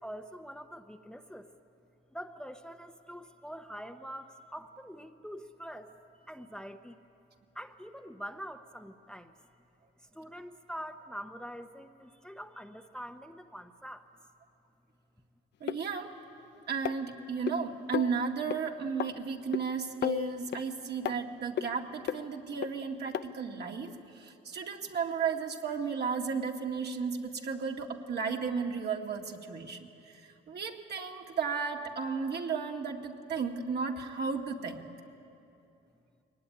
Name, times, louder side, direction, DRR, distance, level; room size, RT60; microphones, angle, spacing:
voice 1, 0.0-1.5 2.1-5.9 6.3-7.0 7.5-9.3 10.1-14.1, equal, 5° left, 6 dB, 0.9 m, -44 dB
voice 2, 15.6-16.2 16.7-30.2 30.5-34.9, right 6 dB, 55° right, 1 dB, 2.1 m, -34 dB
sound 1, 15.7-15.8 16.8-17.5 17.9-18.2 18.5-18.6 19.0-19.1 19.5-19.6 20.0-20.6 21.1-21.2 21.6-21.7 22.1-22.2 22.6-22.7 23.1-23.2 23.9-24.0, left 10 dB, 65° left, 0.7 m, -32 dB
22.5 x 18.5 x 10.0 m, 2.7 s
cardioid pair, 90°, 20 cm